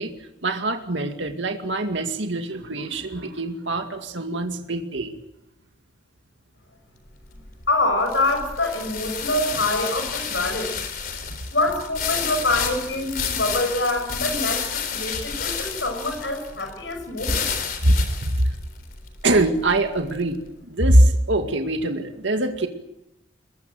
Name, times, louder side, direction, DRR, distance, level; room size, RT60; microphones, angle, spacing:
voice 1, 0.0-5.1 17.8-17.9 18.2-18.6 19.2-22.7, right 1 dB, 80° right, 5 dB, 2.2 m, -23 dB
sound 1, 7.1-20.3, left 6 dB, 50° left, 3.6 m, -31 dB
voice 2, 7.7-10.7 11.5-17.5, left 2 dB, 75° left, 5 dB, 6.8 m, -25 dB
24.0 x 21.0 x 7.7 m, 0.87 s
head